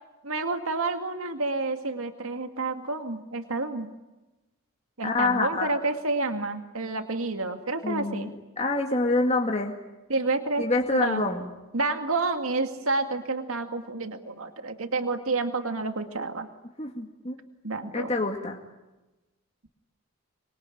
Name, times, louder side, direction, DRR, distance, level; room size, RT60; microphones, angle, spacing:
voice 1, 0.2-3.9 5.0-8.3 10.1-10.6 10.9-11.3 11.7-16.5 17.6-18.1, right 3 dB, 80° right, 6 dB, 2.1 m, -29 dB
voice 2, 5.0-5.7 7.8-9.7 10.6-11.5 16.8-17.4 17.9-18.6, left 2 dB, 30° left, 2 dB, 2.1 m, -26 dB
26.0 x 23.0 x 10.0 m, 1.1 s
head